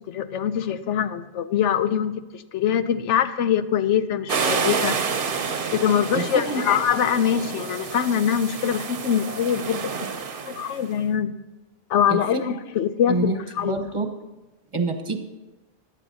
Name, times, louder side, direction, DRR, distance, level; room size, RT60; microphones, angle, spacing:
voice 1, 0.1-5.0 5.7-9.9 10.5-11.3 11.9-13.8, left 8 dB, 75° left, 12 dB, 0.9 m, -23 dB
sound 1, 4.3-10.9, right 5 dB, 50° right, 0.9 m, -29 dB
voice 2, 6.1-6.7 9.9-10.1 12.1-12.4 13.1-13.4 13.6-14.1 14.7-15.2, right 3 dB, 25° right, 4 dB, 1.0 m, -26 dB
16.5 x 11.0 x 2.8 m, 1.1 s
omnidirectional pair, 1.2 m